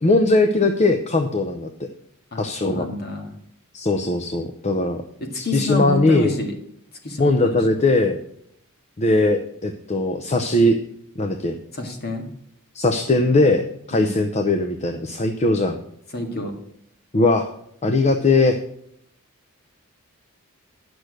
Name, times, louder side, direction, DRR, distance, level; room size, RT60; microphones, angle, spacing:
voice 1, 0.0-1.9 2.4-2.9 3.7-5.0 5.4-6.3 7.2-8.2 9.0-10.8 11.2-11.6 12.7-15.8 17.1-17.5 17.8-18.6, left 2 dB, 30° left, 7 dB, 0.7 m, -19 dB
voice 2, 2.3-3.3 5.2-6.5 7.0-7.6 11.7-12.3 13.9-14.2 16.1-16.5, left 1 dB, 45° left, 3 dB, 2.0 m, -28 dB
10.0 x 6.1 x 6.5 m, 0.70 s
head